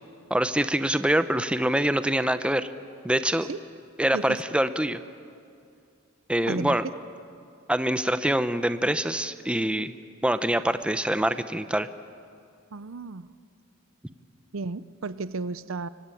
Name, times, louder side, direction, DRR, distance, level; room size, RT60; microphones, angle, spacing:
voice 1, 0.3-2.7 3.0-3.5 4.0-5.0 6.3-6.8 7.7-9.9 10.2-11.9, right 1 dB, 5° right, 11 dB, 0.7 m, -25 dB
voice 2, 6.5-6.9 12.7-13.3 14.5-15.9, right 3 dB, 75° right, 15 dB, 0.7 m, -33 dB
24.5 x 24.0 x 9.2 m, 2.4 s
head